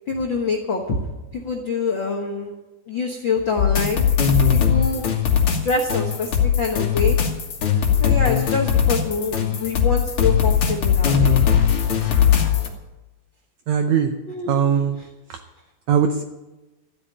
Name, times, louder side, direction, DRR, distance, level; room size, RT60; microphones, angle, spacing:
voice 1, 0.1-1.0 1.3-2.5 2.9-4.1 4.5-5.0 5.6-7.2 8.0-11.3 14.3-14.6, left 4 dB, 85° left, 1 dB, 1.0 m, -25 dB
sound 1, 3.6-12.7, left 8 dB, 50° left, 2.0 m, -19 dB
voice 2, 13.7-14.1 14.5-15.0 15.3-15.4 15.9-16.2, right 7 dB, 80° right, 5 dB, 1.6 m, -20 dB
13.5 x 8.7 x 10.0 m, 1.1 s
omnidirectional pair, 4.3 m